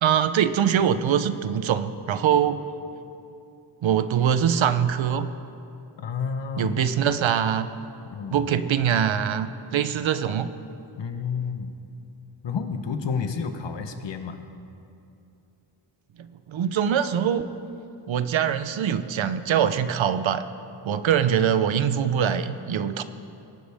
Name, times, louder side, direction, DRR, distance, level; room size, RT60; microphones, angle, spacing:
voice 1, 0.0-2.6 3.8-5.3 6.6-7.7 8.3-10.5 16.5-17.5 18.1-20.4 20.8-23.0, right 8 dB, 75° right, 11 dB, 0.8 m, -23 dB
voice 2, 6.0-6.8 8.1-8.4 11.0-11.8 12.4-14.4, left 6 dB, 65° left, 7 dB, 1.1 m, -30 dB
23.5 x 11.5 x 3.6 m, 2.7 s
wide cardioid pair, 125°, 46 cm